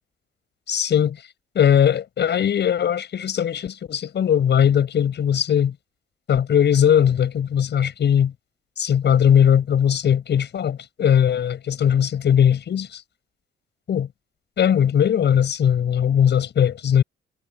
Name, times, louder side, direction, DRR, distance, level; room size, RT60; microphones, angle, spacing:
voice 1, 0.7-1.2 1.6-5.7 6.3-8.3 8.8-13.0 13.9-14.1 14.6-17.0, left 9 dB, 60° left, 7.2 m, -19 dB
cardioid pair, 90°, 20 cm